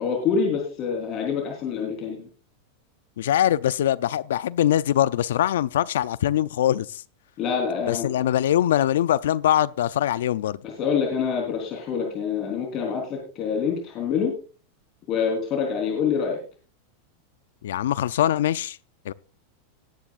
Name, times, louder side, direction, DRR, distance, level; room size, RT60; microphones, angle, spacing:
voice 1, 0.0-2.3 7.4-8.3 10.6-14.3 15.1-16.4, left 6 dB, 40° left, 3.8 m, -26 dB
voice 2, 3.2-7.0 7.9-10.6 17.6-18.8 19.1-19.2, left 11 dB, 80° left, 0.5 m, -22 dB
19.5 x 9.9 x 2.5 m
supercardioid pair, 125°, 0 cm